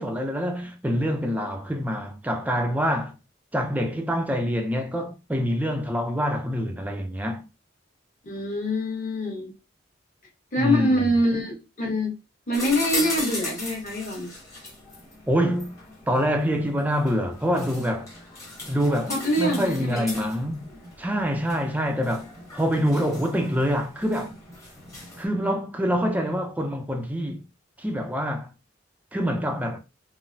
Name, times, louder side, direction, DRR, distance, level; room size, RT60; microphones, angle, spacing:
voice 1, 0.0-3.2 3.5-7.4 10.6-11.0 15.3-15.8 16.1-18.1 18.7-20.7 21.0-24.4 25.2-27.4 27.8-28.5 29.1-29.8, equal, 10° right, 0.5 m, -26 dB
voice 2, 8.2-9.5 10.5-12.1 12.5-14.3 19.1-20.1, left 1 dB, 45° left, 1.3 m, -25 dB
sound 1, 12.5-25.3, left 2 dB, 15° left, 1.0 m, -38 dB
3.8 x 2.1 x 2.6 m
head